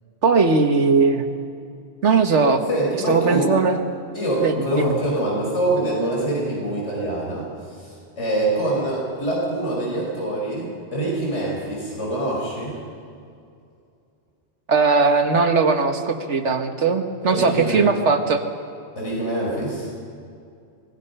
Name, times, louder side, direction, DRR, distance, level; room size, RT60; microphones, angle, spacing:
voice 1, 0.2-1.2 2.0-2.6 3.1-3.8 4.4-5.0 14.7-18.4, right 4 dB, 85° right, 6 dB, 1.8 m, -19 dB
voice 2, 2.7-3.5 4.1-7.5 7.8-12.8 17.2-17.9 19.0-19.9, right 1 dB, 90° left, -4 dB, 5.8 m, -25 dB
25.0 x 20.5 x 5.6 m, 2.4 s
omnidirectional pair, 1.2 m